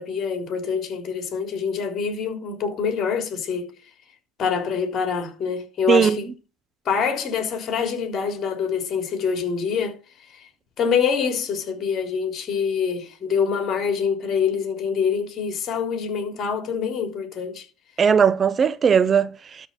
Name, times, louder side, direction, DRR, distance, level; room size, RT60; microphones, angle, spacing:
voice 1, 0.0-3.7 4.4-6.3 6.9-10.0 10.3-10.5 10.8-17.6, left 6 dB, 45° left, 3.4 m, -25 dB
voice 2, 5.9-6.2 18.0-19.7, right 7 dB, 35° right, 0.6 m, -18 dB
12.5 x 4.3 x 5.8 m
hypercardioid pair, 75°, 0 cm